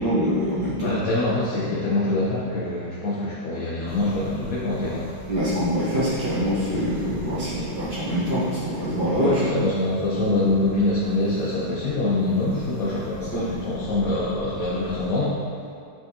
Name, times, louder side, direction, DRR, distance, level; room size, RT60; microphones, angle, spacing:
voice 1, 0.0-1.0 5.3-9.3 13.3-13.4, equal, 65° right, -11 dB, 2.2 m, -24 dB
voice 2, 0.8-5.2 9.2-15.5, left 2 dB, 55° left, -6 dB, 1.3 m, -25 dB
sound 1, 3.9-15.1, right 1 dB, 80° right, 2.2 m, -41 dB
8.7 x 6.3 x 3.0 m, 2.3 s
omnidirectional pair, 1.9 m